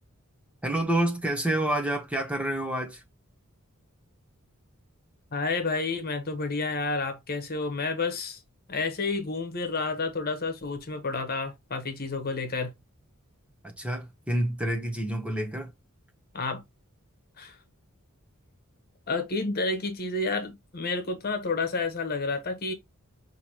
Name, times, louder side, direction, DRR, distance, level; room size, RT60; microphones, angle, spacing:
voice 1, 0.6-3.0 13.6-15.7, right 1 dB, 5° right, 0.8 m, -28 dB
voice 2, 5.3-8.4 8.7-12.7 16.3-16.6 17.4-17.6 19.1-22.7, left 3 dB, 45° left, 1.1 m, -30 dB
5.8 x 2.9 x 2.9 m
head